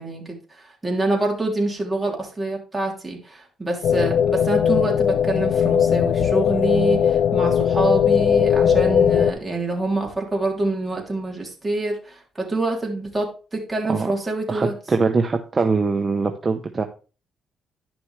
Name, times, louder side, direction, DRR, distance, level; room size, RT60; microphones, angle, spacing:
voice 1, 0.0-14.7, right 2 dB, 10° right, -1 dB, 3.2 m, -26 dB
sound 1, 3.8-9.3, left 8 dB, 70° left, 0.5 m, -19 dB
voice 2, 14.5-16.8, right 4 dB, 30° right, 5 dB, 0.8 m, -22 dB
11.0 x 6.1 x 3.4 m, 0.36 s
cardioid pair, 90°, 0 cm